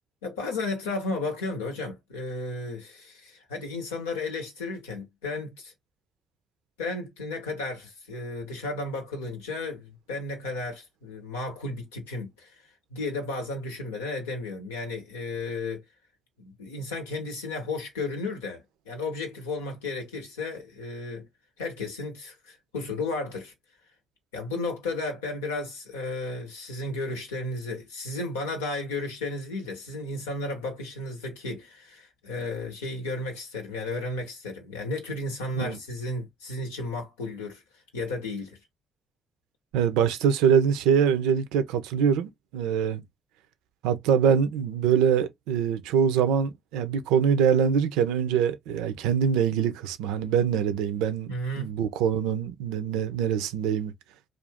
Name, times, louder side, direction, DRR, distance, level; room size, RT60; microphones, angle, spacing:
voice 1, 0.2-5.7 6.8-12.5 12.9-15.8 16.4-21.3 21.6-23.5 24.3-37.6 37.9-38.6 51.3-51.7, left 2 dB, 85° left, 0.8 m, -33 dB
voice 2, 39.7-43.0 43.8-53.9, right 7 dB, 80° right, 0.4 m, -24 dB
2.5 x 2.4 x 3.4 m
hypercardioid pair, 45°, 0 cm